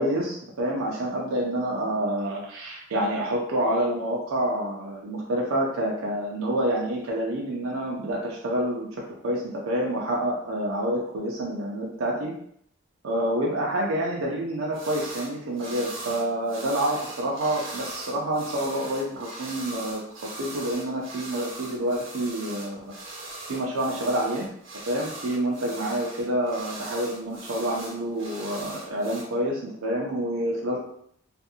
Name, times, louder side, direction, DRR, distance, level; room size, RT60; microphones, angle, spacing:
voice 1, 0.0-8.9 9.2-12.3 13.0-20.0 20.4-22.9 23.5-24.5 24.9-30.8, right 1 dB, 90° right, -2 dB, 0.5 m, -28 dB
sound 1, 14.7-15.3 15.6-29.2, right 2 dB, 70° right, 0.9 m, -40 dB
2.6 x 2.5 x 2.7 m, 0.69 s
head